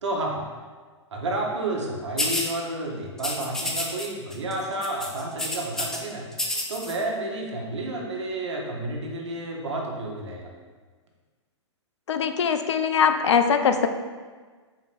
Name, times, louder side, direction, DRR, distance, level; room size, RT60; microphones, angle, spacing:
voice 1, 0.0-0.4 1.1-6.2 6.7-10.5, right 2 dB, 70° right, -1 dB, 1.1 m, -30 dB
sound 1, 2.2-2.5 3.2-4.1 4.3-4.5 4.8-6.0 6.3-6.9, left 1 dB, 5° left, 0.4 m, -29 dB
voice 2, 12.1-13.9, left 6 dB, 70° left, 8 dB, 0.4 m, -21 dB
4.1 x 3.0 x 4.3 m, 1.5 s
figure-of-eight pair, 115°, 15 cm